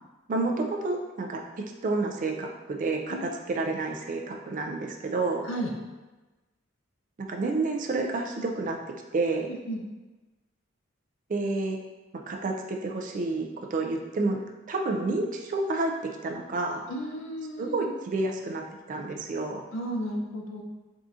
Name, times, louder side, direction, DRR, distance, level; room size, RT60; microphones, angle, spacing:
voice 1, 0.3-1.4 1.8-5.4 7.2-8.8 9.1-9.5 11.3-11.8 12.3-14.4 14.7-15.9 16.2-16.8 17.6-18.6 18.9-19.6, right 3 dB, 40° right, 1 dB, 0.3 m, -29 dB
voice 2, 9.5-9.8 16.9-17.9 19.7-20.6, equal, 75° left, 0 dB, 0.5 m, -33 dB
3.6 x 2.7 x 2.4 m, 1.2 s
head